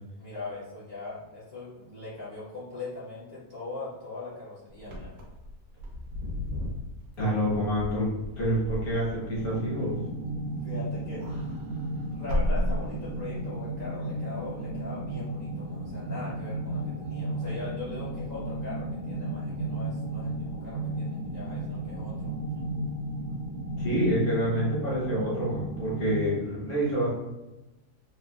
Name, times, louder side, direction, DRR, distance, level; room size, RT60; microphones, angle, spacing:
voice 1, 0.2-5.1 10.6-11.3 12.1-22.6 26.1-26.2, left 3 dB, 50° left, -9 dB, 0.9 m, -40 dB
Wind / Car, 4.8-10.6 10.9-13.4, left 1 dB, 85° right, 1.2 m, -34 dB
voice 2, 7.2-10.0 23.8-27.1, equal, 70° left, -6 dB, 1.6 m, -28 dB
sound 1, 9.4-26.4, right 1 dB, 65° right, 0.8 m, -34 dB
3.5 x 2.4 x 2.3 m, 1.0 s
omnidirectional pair, 1.6 m